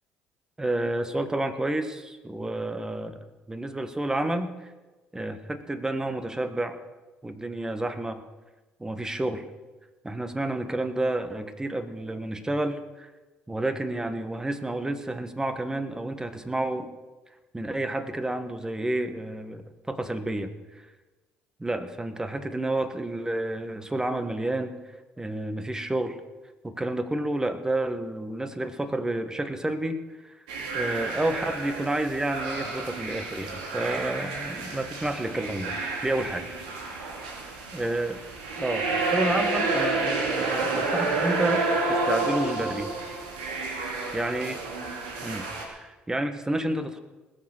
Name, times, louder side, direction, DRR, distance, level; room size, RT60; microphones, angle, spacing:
voice 1, 0.6-4.7 5.1-6.8 7.2-8.2 8.8-9.5 10.0-13.1 13.5-16.9 17.5-20.5 21.6-24.7 25.2-26.2 26.6-30.3 30.7-35.7 36.0-36.5 37.7-38.2 38.6-42.9 44.1-44.6 45.2-45.4 45.7-47.0, right 1 dB, 15° right, 10 dB, 1.6 m, -30 dB
sound 1, 30.5-45.7, right 3 dB, 85° right, 2.4 m, -30 dB
20.0 x 7.5 x 6.3 m, 1.2 s
hypercardioid pair, 65°, 4 cm